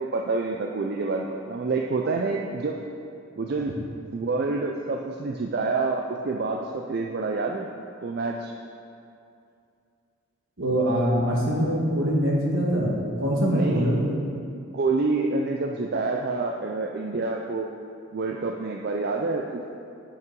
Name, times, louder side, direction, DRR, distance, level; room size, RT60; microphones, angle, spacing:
voice 1, 0.0-2.8 3.4-3.7 4.1-7.7 8.0-8.5 13.5-13.9 14.7-17.7 18.1-19.7, right 3 dB, 50° right, 1 dB, 0.4 m, -27 dB
voice 2, 10.6-14.2, equal, 70° right, -3 dB, 1.5 m, -23 dB
8.3 x 5.8 x 4.5 m, 2.5 s
head